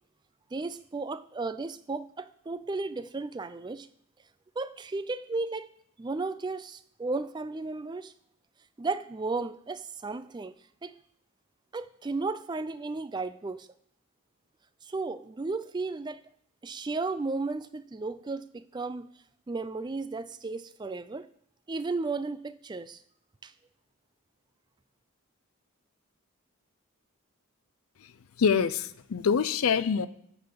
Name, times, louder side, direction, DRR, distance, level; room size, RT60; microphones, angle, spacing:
voice 1, 0.5-3.9 4.6-5.7 6.0-8.1 8.8-10.5 10.8-11.0 11.7-13.7 14.8-16.2 16.6-19.1 19.5-21.3 21.7-23.0 23.4-23.5, right 3 dB, 20° right, 0.3 m, -34 dB
voice 2, 28.4-30.1, left 6 dB, 75° left, 0.5 m, -25 dB
12.0 x 4.0 x 6.7 m
head